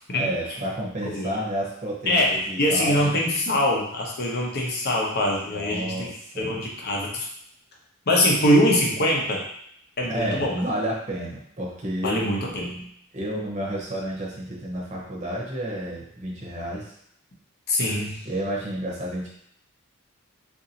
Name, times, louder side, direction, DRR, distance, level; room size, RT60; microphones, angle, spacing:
voice 1, 0.1-3.2 5.5-6.7 10.1-12.3 13.1-16.9 18.2-19.3, right 1 dB, 35° right, -4 dB, 0.8 m, -31 dB
voice 2, 2.1-6.1 6.4-7.3 8.1-9.4 10.0-10.6 12.0-12.9 17.7-18.2, left 1 dB, 50° left, -1 dB, 0.8 m, -23 dB
3.8 x 2.6 x 2.8 m, 0.70 s
head